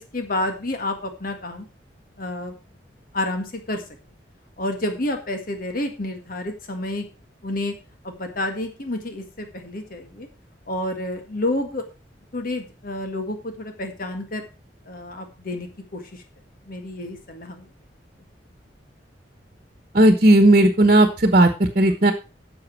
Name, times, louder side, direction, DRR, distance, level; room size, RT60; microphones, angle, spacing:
voice 1, 0.0-1.7 2.2-2.6 3.1-3.8 4.6-7.1 7.4-7.8 8.0-10.3 10.7-11.8 12.3-14.5 14.8-16.2 16.7-17.7, left 1 dB, 55° left, 6 dB, 1.8 m, -29 dB
voice 2, 19.9-22.1, right 1 dB, 45° right, 7 dB, 1.3 m, -15 dB
10.5 x 7.1 x 4.6 m, 0.31 s
head